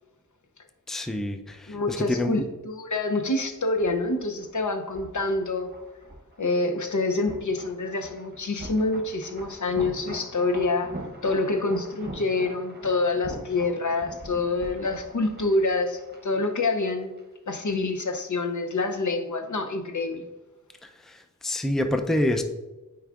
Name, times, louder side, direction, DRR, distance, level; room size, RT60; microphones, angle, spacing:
voice 1, 0.9-2.3 20.8-22.4, left 1 dB, ahead, 6 dB, 0.4 m, -27 dB
voice 2, 1.7-5.7 6.4-17.2 17.5-20.3, left 3 dB, 70° left, 5 dB, 0.7 m, -27 dB
sound 1, 3.4-17.2 17.5-17.6, right 2 dB, 35° right, 1.0 m, -43 dB
9.1 x 4.6 x 2.4 m, 1.1 s
wide cardioid pair, 50°, 31 cm